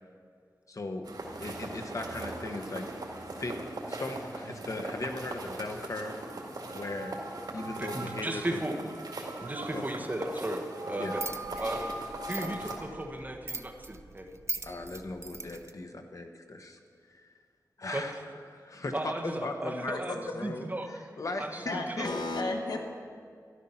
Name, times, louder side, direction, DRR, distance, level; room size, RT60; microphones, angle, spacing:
voice 1, 0.7-1.1 1.4-2.9 3.3-3.6 3.9-6.2 6.7-7.1 7.5-8.6 9.7-9.8 11.0-11.2 11.6-11.7 14.6-16.8 17.1-17.3 17.8-18.2 18.5-22.1, left 2 dB, 50° left, 5 dB, 1.1 m, -38 dB
sound 1, 1.0-12.8, right 2 dB, 80° right, 2.1 m, -39 dB
voice 2, 7.8-8.8 9.4-11.2 11.6-11.9 12.3-14.3 17.9-18.1 18.9-20.9 21.4-22.1, right 1 dB, 25° right, 3 dB, 1.2 m, -35 dB
sound 2, 11.2-15.7, right 3 dB, 45° right, 0.6 m, -41 dB
voice 3, 21.6-22.8, left 2 dB, 80° left, 2 dB, 1.4 m, -33 dB
13.0 x 12.0 x 5.7 m, 2.2 s
wide cardioid pair, 105°, 7 cm